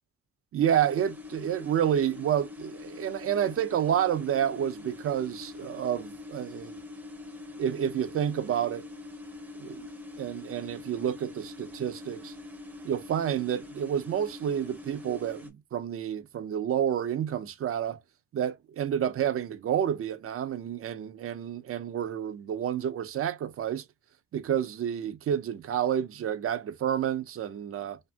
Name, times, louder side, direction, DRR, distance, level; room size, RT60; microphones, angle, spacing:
voice 1, 0.5-6.8 7.6-8.9 9.6-9.9 10.2-12.3 12.8-18.0 18.3-23.8 24.3-28.0, right 9 dB, 50° right, 0.5 m, -29 dB
sound 1, 0.6-15.5, left 3 dB, 5° right, 0.7 m, -44 dB
2.6 x 2.6 x 2.2 m
cardioid pair, 90°, 30 cm